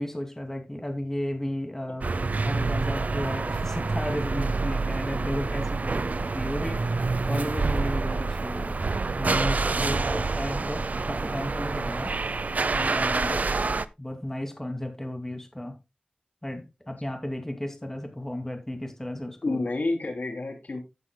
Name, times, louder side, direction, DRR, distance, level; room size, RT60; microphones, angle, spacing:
voice 1, 0.0-2.1 2.4-8.8 9.2-12.1 12.7-13.4 14.0-15.8 16.4-19.6, left 1 dB, 15° left, 2.5 m, -34 dB
sound 1, 2.0-13.9, right 3 dB, 65° right, 0.6 m, -27 dB
voice 2, 9.8-10.2 13.3-13.7 19.4-20.8, left 2 dB, 70° left, 3.0 m, -31 dB
14.5 x 8.3 x 2.3 m
wide cardioid pair, 65°, 3 cm